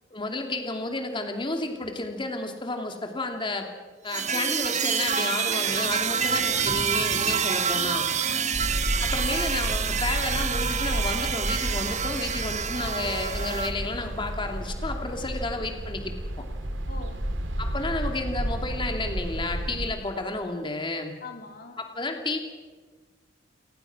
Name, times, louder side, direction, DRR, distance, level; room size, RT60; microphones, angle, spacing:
voice 1, 0.1-3.7 4.0-8.1 9.0-16.4 17.6-21.1 21.8-22.4, left 2 dB, 25° left, 4 dB, 2.8 m, -31 dB
sound 1, 4.1-13.7, right 7 dB, 40° right, 1.0 m, -27 dB
sound 2, 5.6-14.7, equal, 10° left, 3.3 m, -45 dB
voice 2, 6.1-6.7 8.2-8.6 16.9-17.2 21.2-21.8, left 3 dB, 55° left, 5 dB, 2.6 m, -41 dB
sound 3, 8.5-19.9, right 1 dB, 80° right, 2.6 m, -32 dB
29.5 x 18.5 x 6.2 m, 1.4 s
head